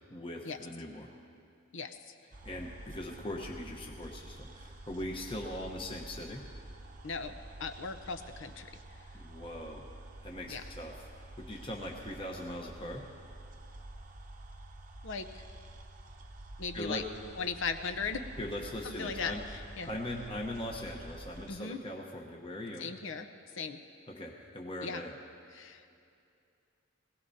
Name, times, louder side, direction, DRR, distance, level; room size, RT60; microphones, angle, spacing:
voice 1, 0.1-1.1 2.4-6.4 9.1-9.9 10.2-11.0 11.4-13.0 16.7-17.0 18.4-19.4 19.8-22.9 24.1-25.1, left 1 dB, 25° left, 0 dB, 1.0 m, -40 dB
voice 2, 1.7-2.1 7.0-7.3 7.6-8.7 10.5-10.6 15.0-15.4 16.6-17.0 17.4-18.2 18.8-19.9 21.5-21.8 22.8-23.3 23.5-23.8 24.8-25.0 25.5-25.8, left 5 dB, 60° left, 7 dB, 0.7 m, -37 dB
sound 1, 2.3-21.5, right 1 dB, 40° right, 0.9 m, -49 dB
21.5 x 17.0 x 2.8 m, 2.5 s
head